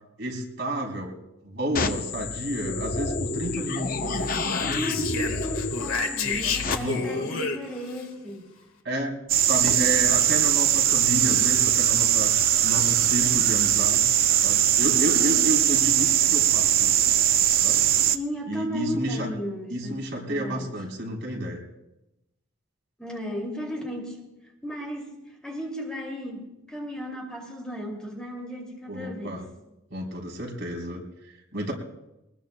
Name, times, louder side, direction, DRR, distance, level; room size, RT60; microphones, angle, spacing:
voice 1, 0.2-1.1 1.4-5.1 6.4-7.2 8.8-14.1 14.4-17.0 17.6-17.8 18.5-19.3 19.7-21.6 28.9-29.5 29.9-31.7, equal, 60° right, -1 dB, 3.8 m, -31 dB
sound 1, 1.7-6.7, left 3 dB, 40° left, 0.8 m, -30 dB
Speech, 4.1-8.0, left 4 dB, 80° left, 1.6 m, -31 dB
voice 2, 4.6-8.5 14.9-15.5 18.1-20.7 23.0-24.2 24.6-25.1 25.4-29.5, equal, 5° left, -2 dB, 2.5 m, -35 dB
sound 2, 9.3-18.2, right 11 dB, 45° right, 0.5 m, -21 dB
23.0 x 20.0 x 2.2 m, 0.94 s
head